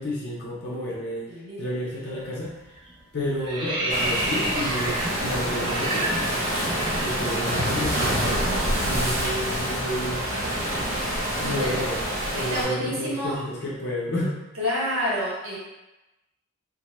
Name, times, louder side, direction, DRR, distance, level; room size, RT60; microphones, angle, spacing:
voice 1, 0.0-1.2 1.6-2.5 3.1-6.2 7.0-10.2 11.4-12.0 12.3-14.4, left 1 dB, 50° left, -6 dB, 0.5 m, -31 dB
voice 2, 1.3-1.6 7.2-7.4 8.9-9.2 11.4-11.8 12.3-13.4 14.6-15.6, equal, 80° right, -6 dB, 0.8 m, -29 dB
sound 1, 2.1-2.4 2.7-7.7 8.0-8.2 8.5-12.5, right 1 dB, 25° right, 0.3 m, -32 dB
Waves surf, 3.9-12.6, equal, 60° right, 1.0 m, -27 dB
2.0 x 2.0 x 2.9 m, 1.0 s
head